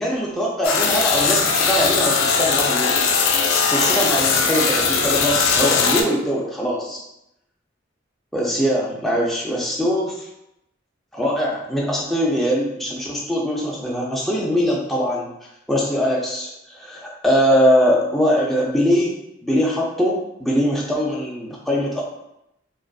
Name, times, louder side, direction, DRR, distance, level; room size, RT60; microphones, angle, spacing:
voice 1, 0.0-3.1 3.7-7.0 8.3-10.3 11.1-15.3 15.7-19.1 19.4-22.0, equal, ahead, -4 dB, 0.4 m, -22 dB
sound 1, 0.6-6.0, left 5 dB, 90° left, 0.4 m, -19 dB
2.4 x 2.4 x 2.2 m, 0.83 s
head